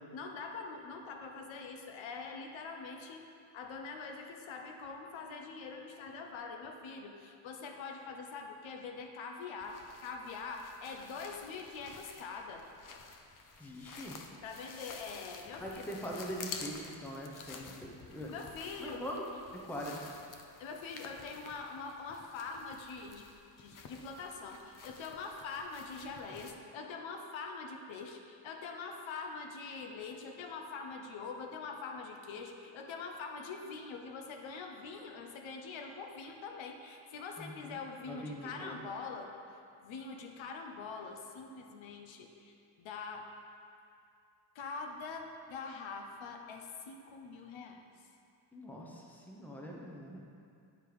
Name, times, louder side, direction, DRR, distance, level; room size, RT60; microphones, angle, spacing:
voice 1, 0.1-3.3 3.5-12.7 14.4-15.9 18.3-19.0 20.6-23.3 23.6-39.3 39.8-43.3 44.5-48.1, left 4 dB, 80° left, 3 dB, 0.8 m, -44 dB
sound 1, 9.6-26.5, left 5 dB, 45° left, 0.5 m, -51 dB
voice 2, 13.6-14.2 15.6-18.3 18.8-19.2 19.5-20.0 26.3-26.4 37.4-37.8 38.1-38.8 48.5-50.2, equal, 5° left, -2 dB, 0.8 m, -42 dB
9.1 x 3.4 x 4.7 m, 2.4 s
cardioid pair, 130°, 46 cm